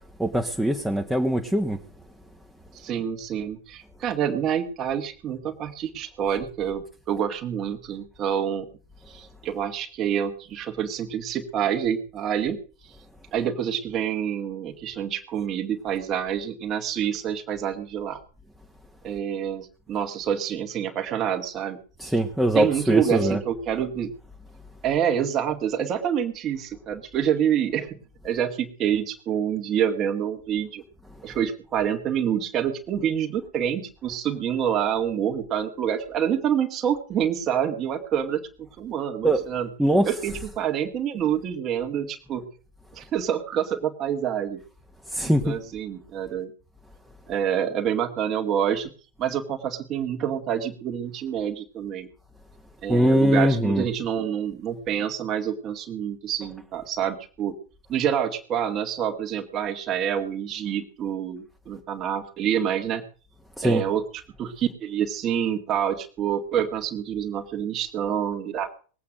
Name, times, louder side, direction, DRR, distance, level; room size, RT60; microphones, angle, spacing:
voice 1, 0.2-1.8 22.0-23.4 39.2-39.4 39.8-40.4 45.1-45.6 52.9-53.9 63.6-63.8, right 1 dB, 5° right, 2 dB, 1.4 m, -22 dB
voice 2, 2.7-6.8 7.1-8.7 9.1-12.6 13.3-18.2 19.0-22.1 22.5-24.1 24.8-28.0 28.2-30.8 31.2-39.7 40.0-42.5 42.9-44.6 45.3-46.5 47.3-48.9 49.2-52.1 52.8-57.5 57.9-63.0 63.6-68.7, right 9 dB, 30° right, 5 dB, 1.9 m, -27 dB
20.5 x 8.6 x 6.4 m, 0.40 s
figure-of-eight pair, 90°, 0 cm